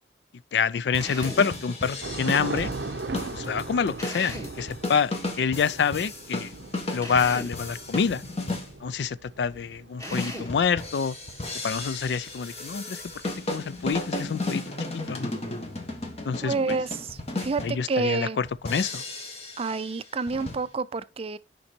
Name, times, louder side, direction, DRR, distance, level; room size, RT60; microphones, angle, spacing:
voice 1, 0.5-2.7 3.3-6.5 6.9-8.2 8.8-11.2 11.6-13.0 13.5-14.6 14.9-15.3 16.2-16.5 17.6-19.0, left 6 dB, 70° left, 0.4 m, -27 dB
sound 1, 0.9-8.7 10.1-17.8 18.5-19.9 20.3-20.7, left 2 dB, 35° left, 1.4 m, -34 dB
Drill, 1.0-1.5 4.0-4.6 7.0-7.6 10.0-10.6, equal, 20° left, 1.8 m, -38 dB
Thunder / Rain, 2.0-14.5, right 3 dB, 80° right, 0.6 m, -39 dB
voice 2, 16.4-18.4 19.6-21.4, right 4 dB, 35° right, 0.4 m, -29 dB
5.7 x 5.4 x 4.4 m
head